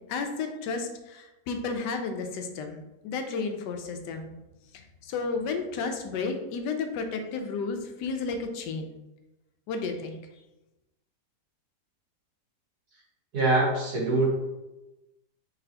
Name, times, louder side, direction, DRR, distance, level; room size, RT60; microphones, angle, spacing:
voice 1, 0.1-4.4 5.0-9.0 9.7-10.2, left 4 dB, 80° left, 5 dB, 1.2 m, -32 dB
voice 2, 13.3-14.3, right 2 dB, 65° right, -5 dB, 2.0 m, -23 dB
4.0 x 4.0 x 2.8 m, 0.98 s
omnidirectional pair, 1.8 m